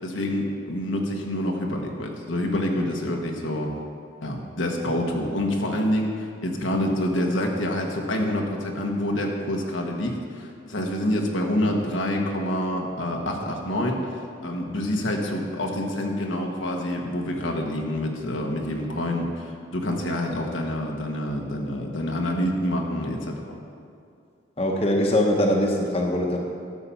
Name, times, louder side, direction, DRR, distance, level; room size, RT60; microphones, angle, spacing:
voice 1, 0.0-3.7 4.2-23.6, left 1 dB, 90° left, 1 dB, 1.5 m, -27 dB
voice 2, 24.6-26.4, left 1 dB, 30° left, 0 dB, 0.9 m, -22 dB
12.0 x 5.7 x 7.1 m, 2.4 s
head